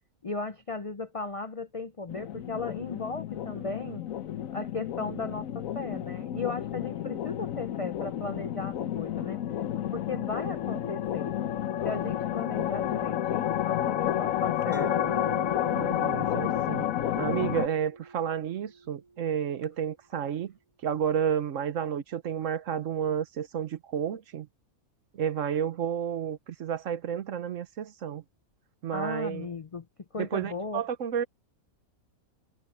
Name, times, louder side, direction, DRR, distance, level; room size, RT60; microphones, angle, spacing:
voice 1, 0.2-4.0 4.5-9.4 9.9-11.4 11.8-15.1 28.9-29.9 30.1-30.8, left 3 dB, 50° left, 0.4 m, -36 dB
sound 1, 2.1-17.7, left 11 dB, 75° left, 1.2 m, -31 dB
Mallet percussion, 14.7-19.3, right 3 dB, 20° right, 3.4 m, -42 dB
voice 2, 15.7-16.9 17.2-20.5 20.8-24.5 25.1-28.2 28.8-29.5 30.2-31.2, right 8 dB, 65° right, 1.2 m, -31 dB
omnidirectional pair, 1.5 m